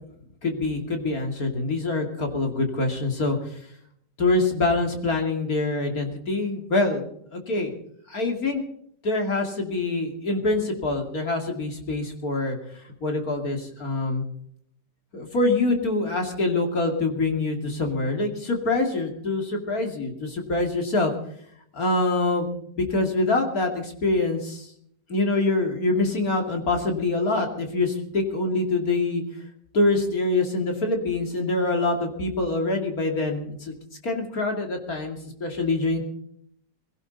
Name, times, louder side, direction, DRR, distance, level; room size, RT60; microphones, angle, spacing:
voice 1, 0.4-3.4 4.2-7.1 7.3-7.7 8.1-8.6 9.0-12.6 13.0-14.2 15.1-21.1 21.7-22.5 22.8-24.7 25.1-29.2 29.7-33.8 34.0-36.0, left 2 dB, 55° left, 3 dB, 2.9 m, -25 dB
21.0 x 17.0 x 4.0 m, 0.69 s
omnidirectional pair, 1.9 m